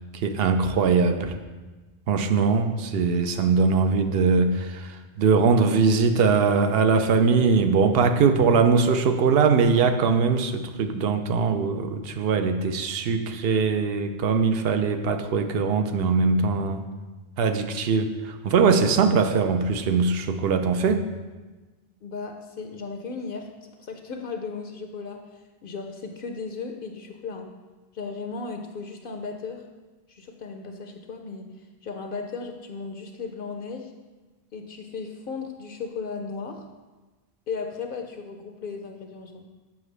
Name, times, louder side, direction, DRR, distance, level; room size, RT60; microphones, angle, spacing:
voice 1, 0.1-1.4 2.1-16.8 17.4-21.1, right 5 dB, 70° right, 7 dB, 0.8 m, -21 dB
voice 2, 22.0-27.5 27.9-29.7 30.1-33.9 34.5-36.6 37.5-39.5, left 4 dB, 65° left, 4 dB, 0.7 m, -36 dB
7.2 x 5.8 x 3.2 m, 1.2 s
omnidirectional pair, 1.1 m